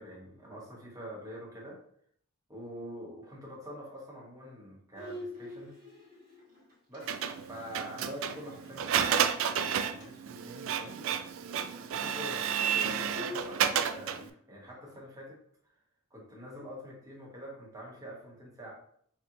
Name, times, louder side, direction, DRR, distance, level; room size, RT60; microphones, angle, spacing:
voice 1, 0.0-1.8 2.5-5.7 6.9-7.2 7.5-11.2 11.9-15.4 16.1-18.7, equal, 15° right, -4 dB, 1.2 m, -45 dB
Bowed string instrument, 4.9-9.3 9.6-9.7 10.0-10.3 10.5-13.4, left 2 dB, 40° right, 1.3 m, -47 dB
Printer, 7.1-14.3, right 8 dB, 65° right, 0.3 m, -31 dB
4.8 x 2.9 x 2.5 m, 0.65 s
head